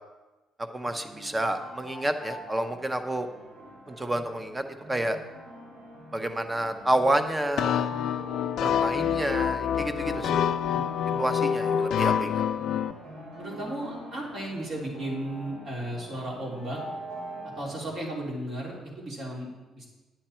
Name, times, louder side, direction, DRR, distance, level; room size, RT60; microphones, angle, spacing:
voice 1, 0.7-3.3 3.9-4.6 4.9-5.2 6.1-7.9 8.6-10.4 11.2-12.4, right 1 dB, 15° right, 8 dB, 0.7 m, -29 dB
sound 1, 0.8-17.8, right 1 dB, 65° right, 2.8 m, -44 dB
sound 2, 7.6-12.9, left 8 dB, 70° left, 0.4 m, -26 dB
voice 2, 10.0-10.4 10.6-11.3 13.4-16.8 17.6-19.9, right 1 dB, 45° right, -3 dB, 3.3 m, -35 dB
10.5 x 8.8 x 4.4 m, 1.1 s
cardioid pair, 130°, 0 cm